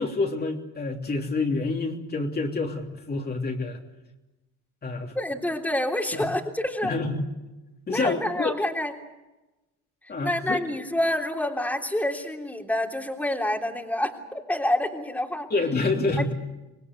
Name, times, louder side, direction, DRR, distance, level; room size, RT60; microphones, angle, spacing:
voice 1, 0.0-3.8 4.8-5.1 6.1-6.3 6.8-7.2 7.9-8.6 10.1-10.6 15.5-16.3, left 3 dB, 30° left, 1 dB, 3.1 m, -27 dB
voice 2, 5.1-6.9 7.9-8.9 10.2-15.5 16.2-16.3, left 1 dB, 5° left, 2 dB, 3.3 m, -27 dB
25.5 x 19.5 x 8.3 m, 1.0 s
supercardioid pair, 90°, 30 cm